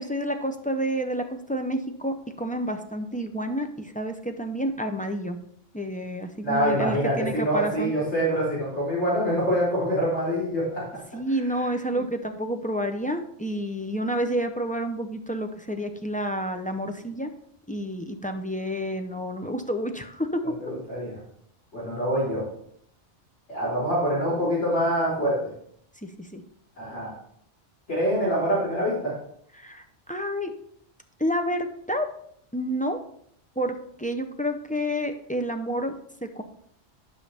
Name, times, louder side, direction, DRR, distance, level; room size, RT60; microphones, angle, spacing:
voice 1, 0.0-5.4 5.7-7.9 11.1-17.3 17.7-20.4 26.0-26.4 29.5-30.5 31.2-32.1 32.5-33.0 33.6-35.9 36.2-36.4, equal, 10° left, 5 dB, 0.4 m, -29 dB
voice 2, 6.4-10.8 11.9-12.0 20.6-21.2 21.7-22.4 23.5-25.4 26.8-27.1 27.9-29.1, equal, 80° left, -8 dB, 4.1 m, -25 dB
11.0 x 5.6 x 3.4 m, 0.68 s
omnidirectional pair, 1.2 m